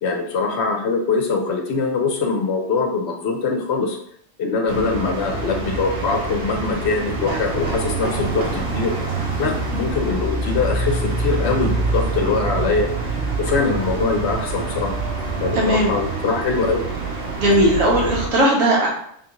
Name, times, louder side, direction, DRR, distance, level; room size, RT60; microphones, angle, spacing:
voice 1, 0.0-4.0 4.4-8.9 9.4-14.9 15.4-16.8, left 4 dB, 65° left, 3 dB, 0.8 m, -23 dB
sound 1, 4.7-18.3, right 3 dB, 50° right, 0.9 m, -25 dB
voice 2, 15.5-15.9 17.4-18.9, right 1 dB, 85° right, -2 dB, 1.4 m, -17 dB
3.7 x 3.1 x 2.9 m, 0.68 s
omnidirectional pair, 1.4 m